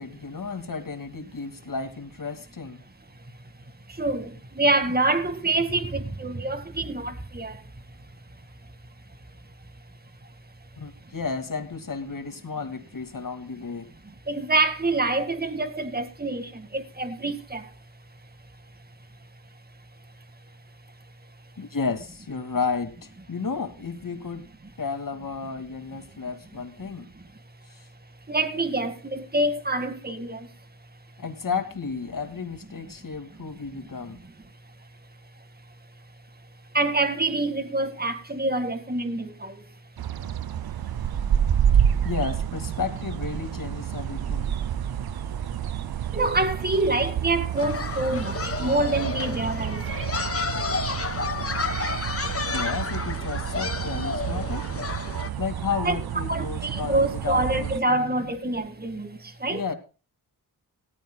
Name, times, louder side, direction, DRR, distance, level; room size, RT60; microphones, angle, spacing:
voice 1, 0.0-2.8 10.8-13.9 21.6-24.4 24.8-27.1 31.2-34.2 42.0-44.5 52.5-54.6 55.4-58.3 59.5-59.7, left 5 dB, 55° left, 2.6 m, -32 dB
voice 2, 4.0-4.3 4.6-7.5 14.3-17.6 28.3-30.4 36.7-39.5 46.1-49.8 55.8-56.0 56.3-59.1 59.4-59.6, right 2 dB, 25° right, 2.0 m, -26 dB
sound 1, 40.0-57.8, right 9 dB, 70° right, 0.7 m, -29 dB
sound 2, 47.6-55.3, left 4 dB, 35° left, 1.5 m, -31 dB
17.5 x 14.5 x 2.4 m
cardioid pair, 50°, 38 cm